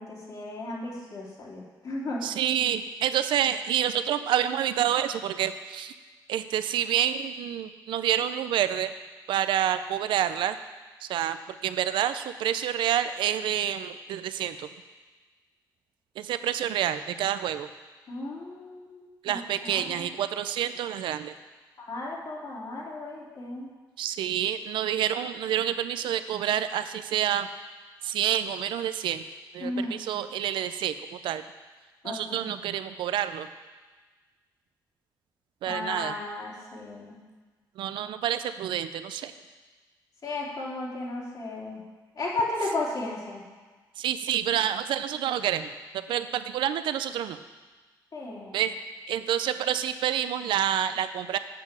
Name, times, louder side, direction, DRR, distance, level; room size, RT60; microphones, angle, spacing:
voice 1, 0.0-2.3 18.1-20.1 21.8-23.7 29.6-30.0 32.0-32.5 35.6-37.2 40.2-41.8 42.1-43.4 48.1-48.6, left 2 dB, 55° left, -5 dB, 3.1 m, -34 dB
voice 2, 2.2-5.9 6.3-8.9 9.3-10.6 11.0-14.7 16.2-17.7 19.2-21.3 24.0-27.5 28.0-29.2 29.5-30.9 31.2-31.4 32.0-33.5 35.6-36.2 37.8-39.3 44.0-47.4 48.5-48.8 49.1-51.4, right 10 dB, 80° right, 11 dB, 0.5 m, -28 dB
7.6 x 6.0 x 7.3 m, 1.3 s
cardioid pair, 65°, 8 cm